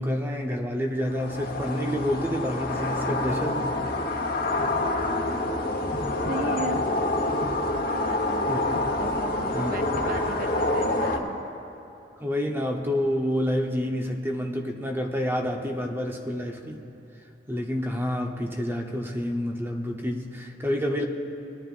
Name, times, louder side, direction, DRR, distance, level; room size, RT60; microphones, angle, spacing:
voice 1, 0.0-3.8 8.5-8.6 9.5-9.7 12.2-16.8 17.5-21.0, equal, 15° right, 3 dB, 0.8 m, -28 dB
sound 1, 1.0-11.2, left 2 dB, 55° left, 1.1 m, -27 dB
voice 2, 6.2-6.9 7.9-8.5 9.0-11.4, right 3 dB, 55° right, 8 dB, 0.6 m, -36 dB
23.5 x 9.8 x 2.5 m, 2.8 s
head